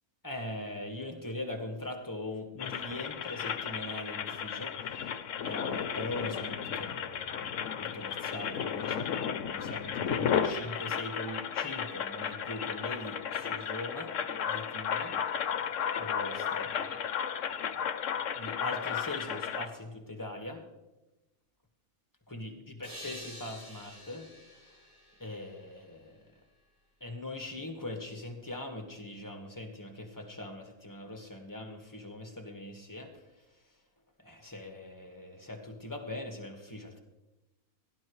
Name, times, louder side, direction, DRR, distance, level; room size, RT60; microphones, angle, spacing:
voice 1, 0.2-14.1 14.4-15.2 16.0-17.0 17.4-17.6 18.4-20.6 22.3-24.3 24.7-24.8 25.2-26.2 27.0-33.4 34.2-37.0, left 1 dB, 15° left, 3 dB, 1.4 m, -41 dB
sound 1, 2.6-19.7, left 8 dB, 65° left, 1.0 m, -34 dB
sound 2, 22.8-26.3, equal, 70° right, 6.5 m, -49 dB
17.5 x 11.5 x 3.2 m, 1.0 s
omnidirectional pair, 1.6 m